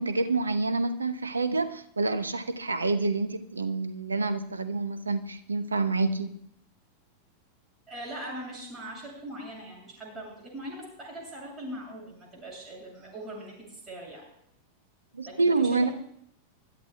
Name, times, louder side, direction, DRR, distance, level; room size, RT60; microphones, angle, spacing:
voice 1, 0.0-6.4 15.1-15.9, right 3 dB, 75° right, 11 dB, 0.9 m, -27 dB
voice 2, 7.9-14.3 15.2-15.9, right 1 dB, 20° right, -2 dB, 7.1 m, -41 dB
24.0 x 13.0 x 2.3 m, 0.71 s
figure-of-eight pair, 90°, 0 cm